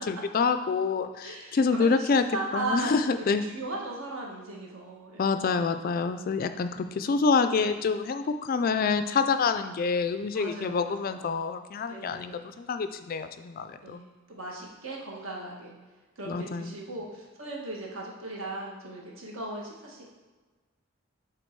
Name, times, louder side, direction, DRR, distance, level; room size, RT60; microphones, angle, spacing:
voice 1, 0.1-2.3 2.5-3.5 5.2-14.0 16.3-16.7, left 5 dB, 40° left, 10 dB, 0.3 m, -27 dB
voice 2, 1.2-2.9 3.2-5.4 7.5-7.6 10.3-11.2 11.9-12.4 13.8-15.7 16.2-20.1, right 2 dB, 65° right, -2 dB, 1.4 m, -37 dB
8.1 x 3.8 x 4.5 m, 1.3 s
head